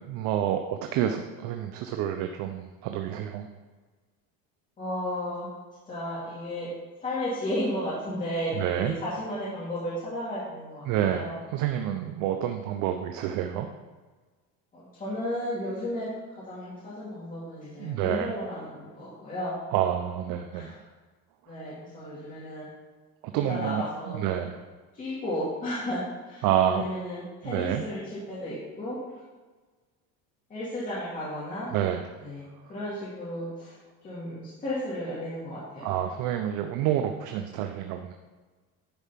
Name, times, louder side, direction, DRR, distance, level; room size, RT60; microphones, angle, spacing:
voice 1, 0.1-3.5 8.5-8.9 10.9-13.7 17.8-18.3 19.7-20.8 23.2-24.6 26.4-26.9 27.4-27.8 31.7-32.1 35.8-38.1, right 10 dB, 60° right, 6 dB, 0.7 m, -28 dB
voice 2, 4.8-5.5 5.9-6.7 7.0-11.3 14.7-16.1 16.5-19.5 20.5-20.7 21.5-22.7 23.3-24.3 24.9-29.0 30.5-31.7 32.2-33.7 34.0-35.9, left 1 dB, 20° left, -9 dB, 2.5 m, -34 dB
10.5 x 4.7 x 5.8 m, 1.3 s
cardioid pair, 145°, 36 cm